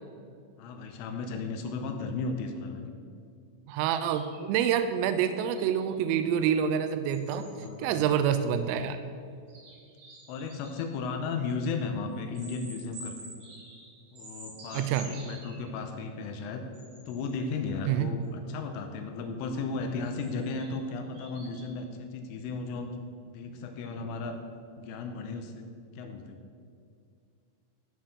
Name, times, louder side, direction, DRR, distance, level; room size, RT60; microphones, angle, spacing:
voice 1, 0.6-2.9 7.6-8.0 10.3-13.3 14.1-16.6 17.1-22.9 23.3-24.4 24.8-25.6 26.0-26.4, left 4 dB, 80° left, 5 dB, 3.2 m, -35 dB
voice 2, 3.7-7.5 7.8-9.0 14.7-15.1 17.9-18.1, right 9 dB, 85° right, 9 dB, 3.2 m, -27 dB
sound 1, 4.1-6.1 7.1-7.7 8.5-8.6 9.5-10.9 12.3-15.7 16.7-17.3 19.7-21.7, right 1 dB, 55° right, 5.2 m, -49 dB
14.0 x 5.7 x 6.9 m, 2.3 s
omnidirectional pair, 6.0 m